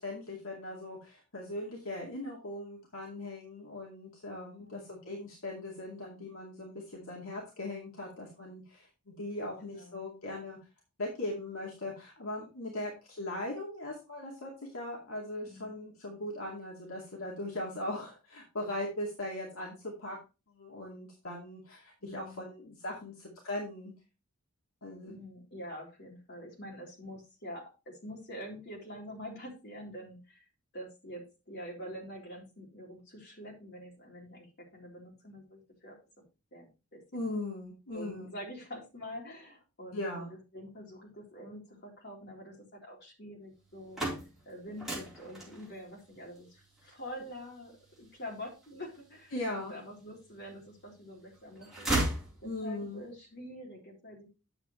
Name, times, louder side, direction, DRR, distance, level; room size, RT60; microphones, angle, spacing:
voice 1, 0.0-10.6 11.0-20.2 20.5-23.9 24.8-25.1 37.1-38.4 39.9-40.3 49.3-49.7 52.4-53.0, left 1 dB, 70° left, -2 dB, 2.4 m, -39 dB
voice 2, 4.6-5.1 9.6-10.0 15.4-15.7 22.0-22.5 25.1-30.5 30.7-37.2 37.9-44.0 44.5-47.7 48.0-51.9 52.4-54.3, equal, 50° left, -1 dB, 3.8 m, -46 dB
sound 1, 43.6-49.6 50.2-51.0 51.3-52.9, right 1 dB, ahead, 3.9 m, -36 dB
9.6 x 7.3 x 3.2 m, 0.29 s
head